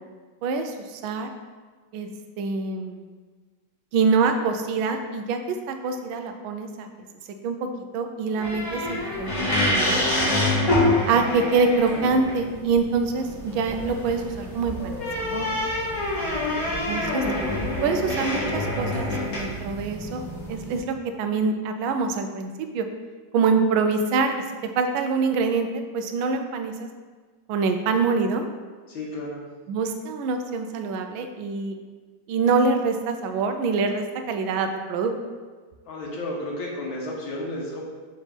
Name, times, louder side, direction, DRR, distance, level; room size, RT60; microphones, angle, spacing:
voice 1, 0.4-1.3 1.9-2.1 2.4-3.0 3.9-6.9 7.4-7.7 7.9-10.0 11.1-15.5 16.9-17.2 17.8-20.2 20.5-22.9 23.3-24.3 24.8-25.7 25.9-26.9 27.5-28.5 29.7-31.8 32.3-35.1, right 4 dB, 85° right, 6 dB, 1.4 m, -25 dB
sound 1, 8.4-20.8, left 1 dB, 45° left, 2.3 m, -26 dB
voice 2, 16.1-17.2 28.9-29.4 35.9-37.8, left 1 dB, 80° left, -4 dB, 2.0 m, -33 dB
6.3 x 3.3 x 4.9 m, 1.4 s
omnidirectional pair, 2.1 m